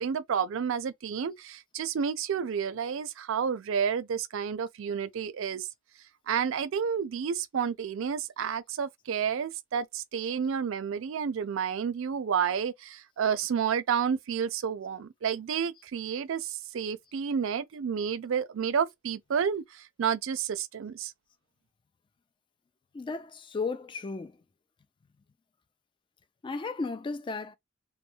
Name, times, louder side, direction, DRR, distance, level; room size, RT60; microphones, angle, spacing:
voice 1, 0.0-5.7 6.3-21.1, right 7 dB, 65° right, 0.4 m, -30 dB
voice 2, 22.9-24.4 26.4-27.5, left 4 dB, 25° left, 0.3 m, -34 dB
2.2 x 2.1 x 3.1 m
head